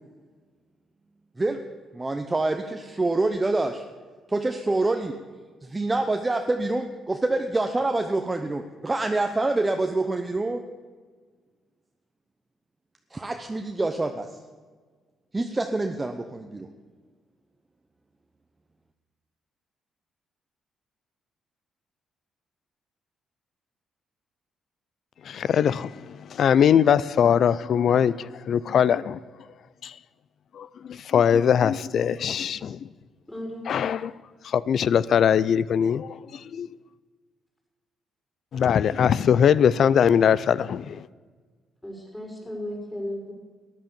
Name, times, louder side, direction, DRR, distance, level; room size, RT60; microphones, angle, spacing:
voice 1, 1.9-3.8 4.3-5.1 5.6-10.6 13.1-14.3 15.3-16.7, right 2 dB, 20° right, 0.9 m, -26 dB
voice 2, 25.3-29.2 29.8-29.9 30.5-32.9 33.7-34.1 34.4-36.7 38.5-41.1, left 8 dB, 60° left, 0.4 m, -21 dB
voice 3, 33.3-33.7 41.8-43.3, left 1 dB, 10° left, 5.6 m, -35 dB
13.5 x 10.5 x 6.9 m
cardioid pair, 90°, 0 cm